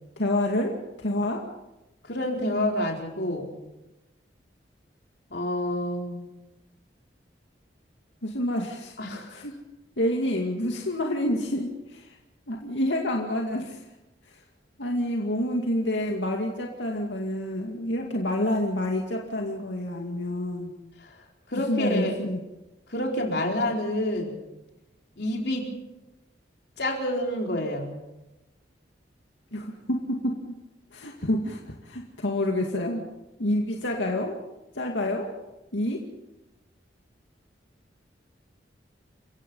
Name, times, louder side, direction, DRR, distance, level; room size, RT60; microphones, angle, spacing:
voice 1, 0.2-1.4 8.2-9.0 9.3-9.6 10.0-12.2 12.5-13.8 14.2-14.4 14.8-20.7 21.7-22.4 29.5-30.5 30.9-33.0 33.4-34.4 34.7-35.3 35.7-36.0, left 1 dB, 85° left, 1 dB, 2.4 m, -28 dB
voice 2, 2.0-3.6 5.3-6.3 9.0-9.4 21.0-21.2 21.5-22.2 22.9-24.4 25.2-25.7 26.8-28.0, left 1 dB, 60° left, 1 dB, 4.5 m, -28 dB
30.0 x 16.0 x 5.6 m, 0.99 s
head